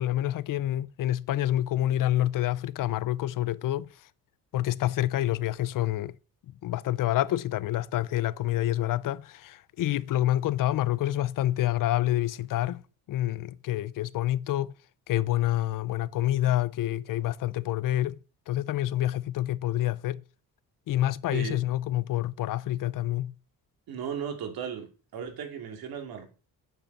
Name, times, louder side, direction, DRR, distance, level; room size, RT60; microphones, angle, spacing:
voice 1, 0.0-3.9 4.5-6.2 6.6-12.8 13.1-14.7 15.1-18.1 18.5-20.2 20.9-23.3, left 14 dB, 60° left, 0.6 m, -27 dB
voice 2, 23.9-26.3, right 7 dB, 75° right, 2.6 m, -36 dB
8.1 x 6.9 x 6.0 m
cardioid pair, 120°, 37 cm